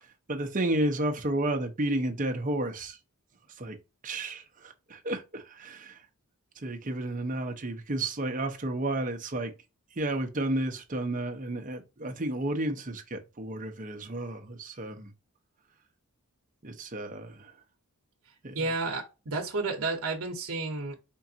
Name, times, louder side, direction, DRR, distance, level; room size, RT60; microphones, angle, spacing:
voice 1, 0.3-3.0 3.6-3.8 4.0-6.0 6.6-9.5 10.0-15.1 16.6-17.5 18.4-18.5, right 1 dB, 35° right, 0.7 m, -32 dB
voice 2, 18.5-21.0, right 3 dB, 70° right, 0.9 m, -31 dB
4.5 x 2.5 x 2.7 m
head